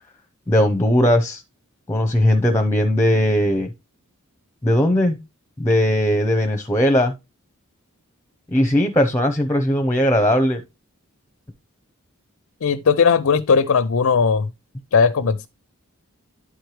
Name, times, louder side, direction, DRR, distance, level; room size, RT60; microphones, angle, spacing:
voice 1, 0.5-1.4 1.9-3.7 4.6-5.2 5.6-7.1 8.5-10.6, left 1 dB, 15° left, 0.8 m, -18 dB
voice 2, 12.6-14.5 14.9-15.5, left 5 dB, 70° left, 0.5 m, -17 dB
11.0 x 4.5 x 3.2 m
head